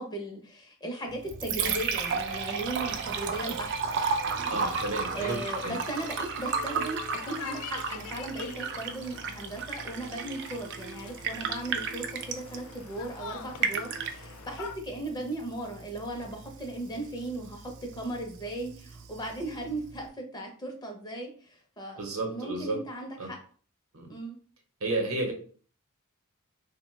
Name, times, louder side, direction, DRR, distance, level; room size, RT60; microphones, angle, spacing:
voice 1, 0.0-4.6 5.1-22.0 22.3-23.4 24.1-24.4, right 1 dB, 20° left, 2 dB, 0.5 m, -37 dB
Liquid, 1.1-20.1, right 5 dB, 55° right, 0.4 m, -34 dB
voice 2, 4.5-5.7 22.0-22.8 23.2-23.3 23.9-24.1 24.8-25.3, right 2 dB, 70° right, 2 dB, 0.8 m, -32 dB
sound 1, 4.7-14.8, left 7 dB, 85° left, 0.3 m, -45 dB
2.9 x 2.1 x 3.1 m, 0.43 s
head